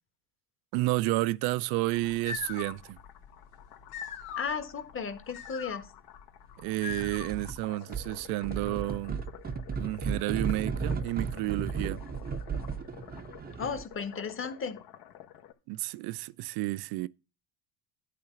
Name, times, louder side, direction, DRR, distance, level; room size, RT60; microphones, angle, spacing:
voice 1, 0.7-3.0 6.6-9.2 9.8-12.0 15.7-17.1, right 19 dB, 60° right, 0.6 m, -31 dB
sound 1, 1.9-15.5, left 11 dB, 60° left, 1.5 m, -51 dB
sound 2, 2.0-7.6, left 8 dB, 85° left, 2.0 m, -42 dB
voice 2, 4.4-5.9 13.6-14.8, left 6 dB, 30° left, 1.6 m, -35 dB
sound 3, 6.9-7.6 7.9-13.9, right 5 dB, 20° right, 0.7 m, -35 dB
11.0 x 3.7 x 7.0 m
supercardioid pair, 85°, 42 cm